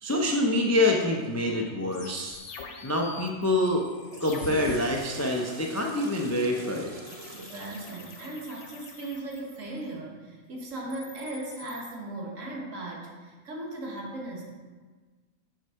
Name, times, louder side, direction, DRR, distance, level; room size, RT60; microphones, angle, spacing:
voice 1, 0.0-2.4 2.8-3.8 4.2-6.9, left 1 dB, 25° left, 0 dB, 0.3 m, -26 dB
sound 1, 1.9-4.8 7.1-9.9 10.7-11.9, left 4 dB, 65° left, 1.1 m, -44 dB
Water / Toilet flush, 3.8-9.1, right 2 dB, 35° right, 0.7 m, -45 dB
voice 2, 7.3-14.4, right 2 dB, 70° right, -1 dB, 1.6 m, -37 dB
6.3 x 4.6 x 5.6 m, 1.4 s
omnidirectional pair, 1.4 m